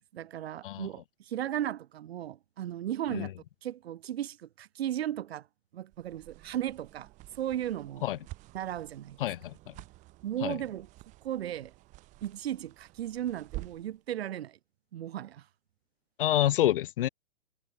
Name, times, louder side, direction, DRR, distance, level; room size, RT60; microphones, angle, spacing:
voice 1, 0.0-3.3 3.6-5.5 5.7-7.1 7.4-8.0 8.5-9.2 10.2-10.9 11.2-11.7 12.2-14.6 14.9-15.4, right 11 dB, 60° right, 1.6 m, -35 dB
sound 1, 5.9-14.0, right 19 dB, 20° right, 1.8 m, -49 dB
voice 2, 9.2-9.7 10.4-10.6 16.2-17.1, left 13 dB, 50° left, 1.2 m, -28 dB
hypercardioid pair, 165°, 34 cm